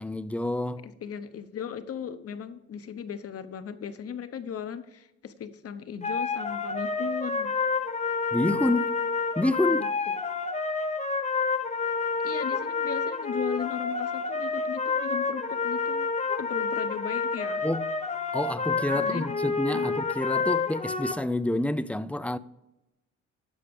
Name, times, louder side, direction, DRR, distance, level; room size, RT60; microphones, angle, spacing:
voice 1, 0.0-0.9 8.3-9.0 9.4-9.9 17.6-18.0 18.3-22.4, left 1 dB, 5° left, 0.4 m, -28 dB
voice 2, 0.8-7.5 9.7-10.2 12.2-16.1 16.4-17.7 18.9-19.5 19.7-20.0, left 7 dB, 50° left, 0.9 m, -37 dB
sound 1, 6.0-21.1, left 4 dB, 25° left, 1.1 m, -29 dB
12.0 x 5.0 x 5.2 m
cardioid pair, 90°, 30 cm